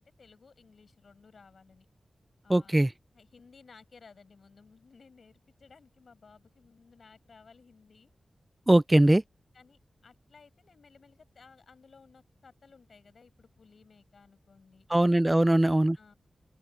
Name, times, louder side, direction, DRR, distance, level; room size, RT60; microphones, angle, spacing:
voice 1, 0.0-1.9 2.4-2.8 3.1-8.1 9.5-14.9 15.3-15.6 16.0-16.1, left 5 dB, 70° left, 6.5 m, -57 dB
voice 2, 2.5-2.9 8.7-9.2 14.9-16.0, right 1 dB, 20° right, 0.3 m, -21 dB
open air
cardioid pair, 60°, 0 cm